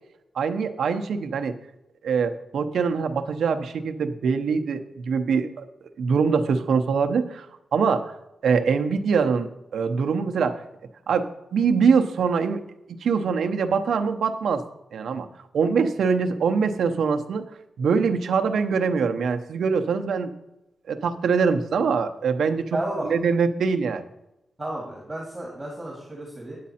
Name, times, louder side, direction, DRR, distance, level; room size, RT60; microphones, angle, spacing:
voice 1, 0.3-1.5 2.0-5.6 6.0-7.5 7.7-8.1 8.4-10.6 11.1-12.6 12.9-14.6 14.9-15.3 15.5-17.4 17.8-20.3 20.9-22.7 23.0-24.1, right 5 dB, 80° right, 7 dB, 0.7 m, -23 dB
voice 2, 22.7-23.1 24.6-26.6, right 1 dB, 15° right, -3 dB, 2.1 m, -32 dB
9.4 x 8.4 x 4.3 m, 0.91 s
wide cardioid pair, 135°, 0 cm